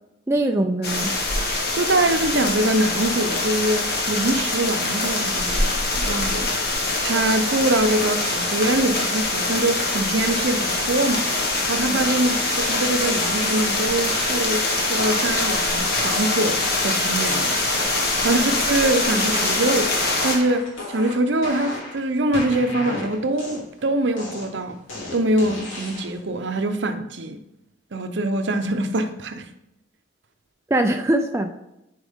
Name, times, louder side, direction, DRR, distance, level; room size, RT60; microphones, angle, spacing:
voice 1, 0.3-1.2 11.9-12.0 18.3-18.5 30.7-31.5, right 1 dB, 15° right, 0.4 m, -22 dB
sound 1, 0.8-20.4, left 2 dB, 50° left, 1.6 m, -24 dB
voice 2, 1.7-11.3 11.7-14.6 14.9-17.5 18.0-19.9 20.2-24.8 25.1-27.4 27.9-29.4, right 1 dB, 65° right, 0.7 m, -24 dB
sound 2, 11.4-11.7 12.3-13.7 14.1-14.4 15.0-17.1 17.5-18.1 18.5-19.0 19.3-22.0 22.3-23.8 24.2-26.2, left 2 dB, 90° left, 2.8 m, -34 dB
9.8 x 4.8 x 3.6 m
head